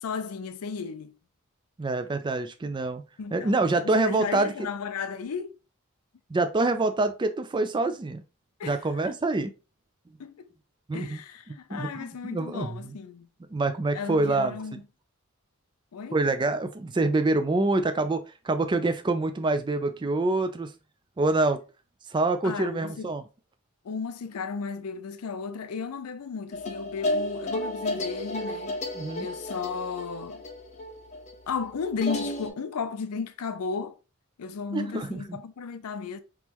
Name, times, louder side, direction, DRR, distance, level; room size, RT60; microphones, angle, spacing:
voice 1, 0.0-1.1 3.2-3.6 3.8-5.6 8.6-8.8 9.0-9.1 10.2-10.5 10.9-13.3 13.9-14.8 15.9-16.2 22.4-23.1 23.8-28.8 29.2-30.4 31.5-34.0 34.4-36.2, left 5 dB, 85° left, 0.5 m, -34 dB
voice 2, 1.8-3.0 3.3-4.7 6.3-8.2 8.6-9.5 10.9-11.2 11.7-12.9 13.5-14.6 16.1-20.7 21.2-21.6 22.1-23.2 29.0-29.3 34.7-35.4, right 2 dB, 20° right, 0.3 m, -26 dB
sound 1, 26.5-32.5, left 1 dB, 30° left, 0.6 m, -32 dB
3.6 x 3.0 x 2.9 m
head